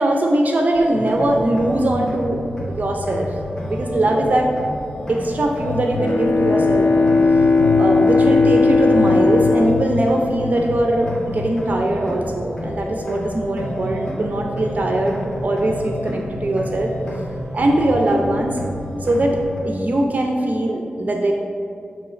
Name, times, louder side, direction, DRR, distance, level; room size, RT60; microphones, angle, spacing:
voice 1, 0.0-2.4 2.7-3.3 3.7-4.5 5.1-7.5 7.8-16.9 17.5-18.6 19.0-19.4 19.6-21.3, right 1 dB, 50° right, 1 dB, 0.5 m, -21 dB
sound 1, 0.7-19.6, left 2 dB, 15° left, 1.4 m, -29 dB
Bowed string instrument, 5.9-11.1, left 3 dB, 70° left, 0.4 m, -17 dB
7.2 x 3.1 x 4.8 m, 2.6 s
wide cardioid pair, 70°, 3 cm